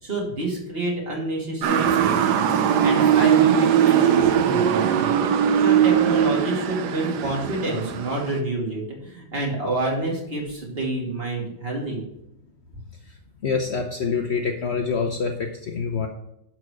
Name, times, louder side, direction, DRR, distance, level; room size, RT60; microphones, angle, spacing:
voice 1, 0.0-5.2 5.6-12.0, right 2 dB, 30° right, -2 dB, 2.8 m, -28 dB
Motor vehicle (road) / Siren, 1.6-8.4, right 9 dB, 65° right, 1.2 m, -20 dB
voice 2, 13.4-16.1, left 5 dB, 65° left, 3 dB, 0.6 m, -26 dB
11.0 x 4.8 x 6.3 m, 0.81 s
omnidirectional pair, 2.2 m